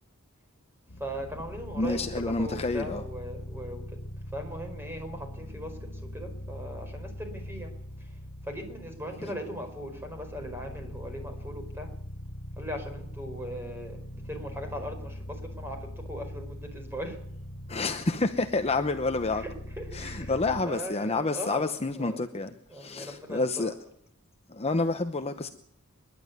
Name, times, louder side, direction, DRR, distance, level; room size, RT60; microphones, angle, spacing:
sound 1, 0.9-20.6, equal, 75° left, 2.0 m, -42 dB
voice 1, 1.0-3.8 4.3-5.7 6.1-7.7 8.4-11.9 12.6-14.0 14.3-15.8 16.1-17.2 19.3-21.7 21.9-22.2 22.7-23.7 25.1-25.5, equal, 10° right, 4.8 m, -39 dB
voice 2, 1.7-3.0 9.2-9.3 17.7-19.4 19.9-22.5 22.7-23.7 24.5-25.5, left 3 dB, 30° left, 0.9 m, -29 dB
26.0 x 11.5 x 9.6 m
head